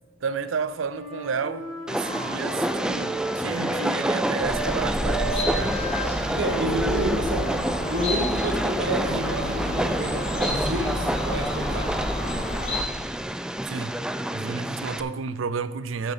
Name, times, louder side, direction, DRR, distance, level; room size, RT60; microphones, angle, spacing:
voice 1, 0.2-5.8 13.7-14.0 14.3-16.1, right 5 dB, 85° right, 0.5 m, -31 dB
Wind instrument woodwind instrument, 0.9-4.8 5.0-9.3, right 2 dB, 50° left, 2.5 m, -34 dB
Train, 1.9-15.0, right 1 dB, 5° right, 0.3 m, -28 dB
sound 1, 4.4-12.8, left 1 dB, 35° left, 1.8 m, -30 dB
voice 2, 6.3-7.5 7.9-11.9, right 1 dB, 65° right, 1.4 m, -29 dB
7.0 x 7.0 x 5.6 m
head